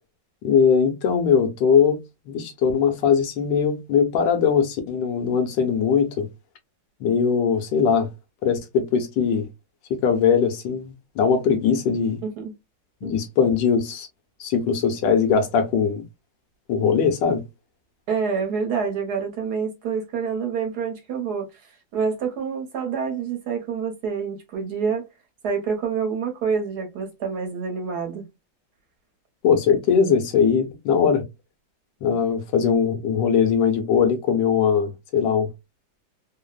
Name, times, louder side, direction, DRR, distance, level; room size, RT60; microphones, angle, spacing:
voice 1, 0.4-2.0 2.3-6.3 7.0-8.1 8.4-9.4 9.9-12.2 13.0-14.1 14.4-16.0 16.7-17.4 29.4-31.2 32.0-35.5, left 6 dB, 75° left, 1.3 m, -20 dB
voice 2, 12.2-12.5 13.0-13.2 18.1-21.6 21.9-25.1 25.4-28.2, right 6 dB, 65° right, 1.2 m, -27 dB
3.2 x 2.0 x 2.2 m
omnidirectional pair, 2.1 m